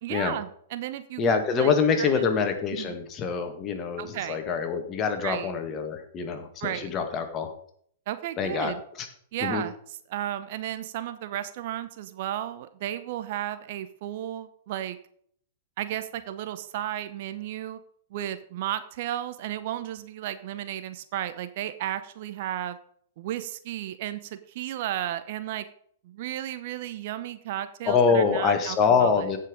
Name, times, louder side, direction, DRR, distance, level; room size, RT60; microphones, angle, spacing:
voice 1, 0.0-1.7 2.0-2.4 2.7-3.0 4.0-4.4 5.2-5.5 6.6-6.9 8.1-8.8 9.3-9.8 10.1-15.0 15.8-17.8 18.1-22.8 23.2-25.7 26.0-29.3, right 12 dB, 50° right, 11 dB, 0.9 m, -34 dB
voice 2, 1.2-7.5 8.4-8.7 9.0-9.1 9.4-9.6 27.9-29.4, left 6 dB, 30° left, 6 dB, 2.0 m, -25 dB
16.0 x 5.8 x 5.2 m, 0.63 s
figure-of-eight pair, 105°, 0 cm